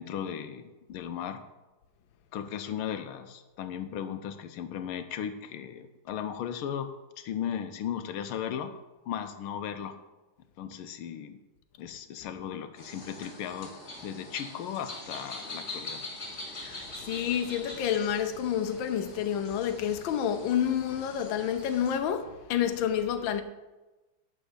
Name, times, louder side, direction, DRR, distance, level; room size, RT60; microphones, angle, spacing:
voice 1, 0.0-1.4 2.3-8.8 9.1-10.0 10.6-11.4 11.8-13.7 14.0-16.1, left 9 dB, 90° left, 1.6 m, -36 dB
sound 1, 12.8-21.9, left 2 dB, 30° left, 2.2 m, -43 dB
voice 2, 16.6-23.4, left 9 dB, 70° left, 1.5 m, -29 dB
11.5 x 4.8 x 8.1 m
omnidirectional pair, 2.3 m